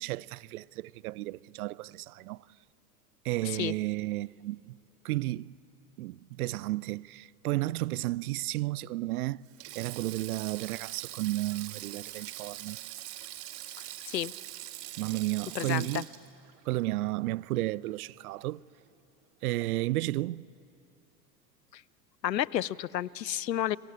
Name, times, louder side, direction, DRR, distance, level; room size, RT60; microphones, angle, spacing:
voice 1, 0.0-2.4 3.2-4.8 5.0-5.5 6.0-9.4 9.7-12.8 15.0-16.1 16.7-18.6 19.4-20.4, right 18 dB, 65° right, 0.6 m, -33 dB
voice 2, 3.4-3.7 14.1-14.3 15.5-16.0 21.7-21.8 22.2-23.8, left 12 dB, 90° left, 0.6 m, -31 dB
Sink (filling or washing), 9.5-17.9 18.2-18.4 19.6-19.9, right 15 dB, 45° right, 1.9 m, -43 dB
28.5 x 22.5 x 8.5 m
hypercardioid pair, 85°, 49 cm